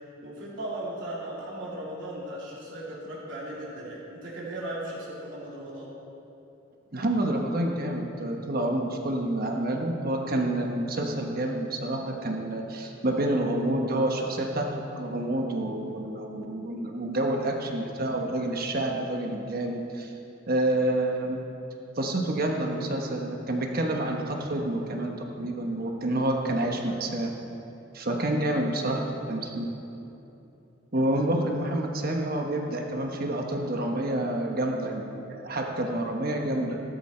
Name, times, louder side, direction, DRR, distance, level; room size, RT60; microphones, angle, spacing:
voice 1, 0.2-5.9, right 1 dB, 70° right, -6 dB, 3.1 m, -37 dB
voice 2, 6.9-14.7 14.9-20.1 20.5-21.4 22.0-27.3 27.9-29.7 30.9-36.8, right 1 dB, 50° right, 2 dB, 1.2 m, -28 dB
14.5 x 12.5 x 4.4 m, 2.9 s
head